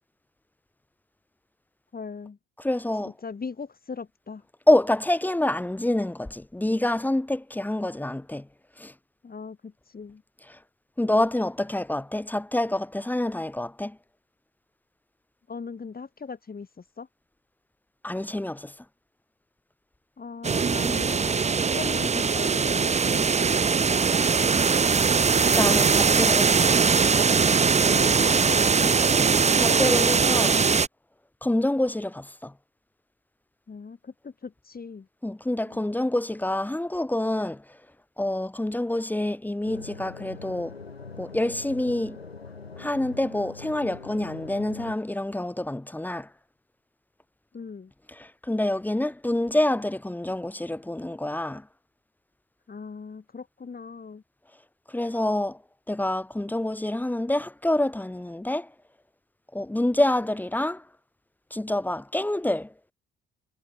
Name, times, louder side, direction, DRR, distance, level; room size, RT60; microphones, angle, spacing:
voice 1, 1.9-2.4 3.0-4.4 9.2-10.2 15.5-17.1 20.2-23.5 27.8-29.3 29.6-30.8 33.7-35.1 35.6-35.8 47.5-47.9 52.7-54.2, left 5 dB, 30° left, 7.9 m, -39 dB
voice 2, 2.6-3.1 4.7-8.5 8.8-8.9 11.0-14.0 18.0-18.7 25.5-27.3 29.2-29.3 29.6-30.5 31.4-32.5 35.2-37.6 38.2-40.7 41.2-42.2 42.8-46.3 48.2-51.6 54.9-55.6 55.9-58.7 59.5-60.8 61.5-62.7, left 1 dB, 5° left, 0.8 m, -27 dB
sound 1, 20.4-30.9, right 5 dB, 20° right, 1.0 m, -21 dB
sound 2, 39.6-45.0, left 4 dB, 85° left, 4.1 m, -42 dB
figure-of-eight pair, 50°, 30 cm